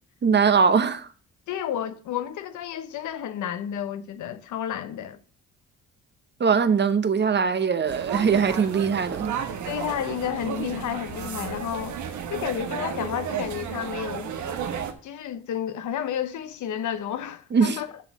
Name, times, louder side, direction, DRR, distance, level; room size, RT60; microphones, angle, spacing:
voice 1, 0.2-1.1 6.4-9.3 17.5-17.8, right 6 dB, 35° right, 0.9 m, -21 dB
voice 2, 1.5-5.2 9.7-12.0 12.3-14.3 15.0-17.9, left 10 dB, 75° left, 1.0 m, -31 dB
sound 1, 7.9-14.9, right 7 dB, 70° right, 1.3 m, -33 dB
7.1 x 6.2 x 6.0 m
cardioid pair, 90°, 30 cm